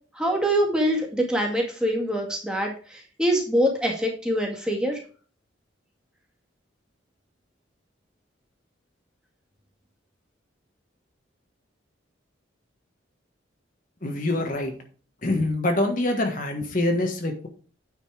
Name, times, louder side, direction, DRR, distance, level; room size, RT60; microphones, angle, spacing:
voice 1, 0.1-5.0, equal, 5° right, 0 dB, 2.1 m, -24 dB
voice 2, 14.0-14.7 15.2-17.5, left 1 dB, 40° left, 4 dB, 1.4 m, -25 dB
9.4 x 5.3 x 4.8 m, 0.40 s
head